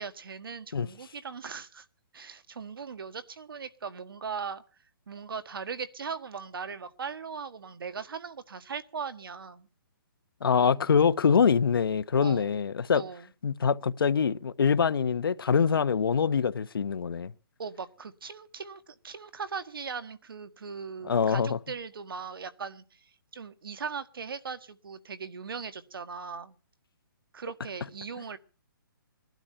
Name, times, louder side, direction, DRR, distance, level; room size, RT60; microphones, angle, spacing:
voice 1, 0.0-1.8 2.1-4.6 5.1-9.7 12.2-12.6 12.9-13.3 17.6-26.6 27.3-28.4, right 5 dB, 75° right, 1.6 m, -39 dB
voice 2, 10.4-13.0 13.4-17.3 21.0-21.6, left 6 dB, 75° left, 0.9 m, -24 dB
20.5 x 12.0 x 5.6 m
hypercardioid pair, 165°, 12 cm